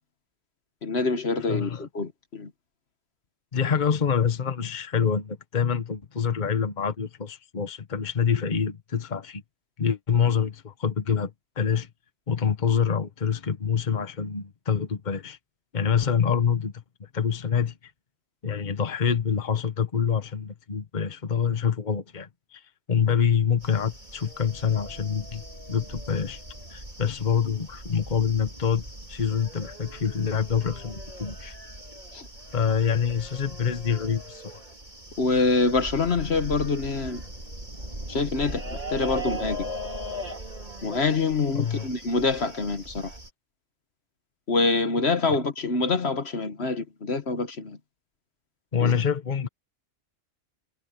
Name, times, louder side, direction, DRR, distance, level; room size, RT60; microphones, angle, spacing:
voice 1, 0.8-2.5 32.1-32.3 35.2-37.2 38.1-39.7 40.8-43.1 44.5-47.8 48.8-48.9, left 3 dB, 55° left, 1.6 m, -25 dB
voice 2, 1.5-1.9 3.5-9.4 9.8-11.3 11.6-11.9 12.3-15.4 15.7-16.7 17.0-17.7 18.4-22.6 22.9-25.4 25.7-26.4 26.7-28.8 29.1-31.5 32.5-34.6 41.5-41.9 48.7-49.5, left 7 dB, 40° left, 1.3 m, -26 dB
sound 1, 23.6-43.3, right 1 dB, 35° right, 4.3 m, -39 dB
omnidirectional pair, 1.3 m